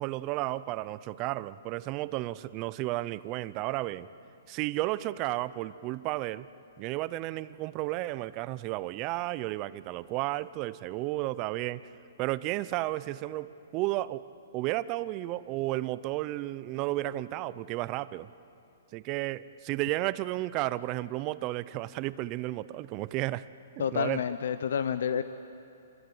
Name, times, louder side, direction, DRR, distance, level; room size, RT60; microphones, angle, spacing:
voice 1, 0.0-4.1 4.5-6.5 6.8-11.8 12.2-14.2 14.5-18.3 18.9-23.5 23.8-24.2, right 17 dB, 30° right, 17 dB, 0.6 m, -33 dB
voice 2, 23.8-25.2, left 7 dB, 70° left, 12 dB, 0.8 m, -29 dB
27.0 x 21.5 x 7.9 m, 2.6 s
hypercardioid pair, 155°, 0 cm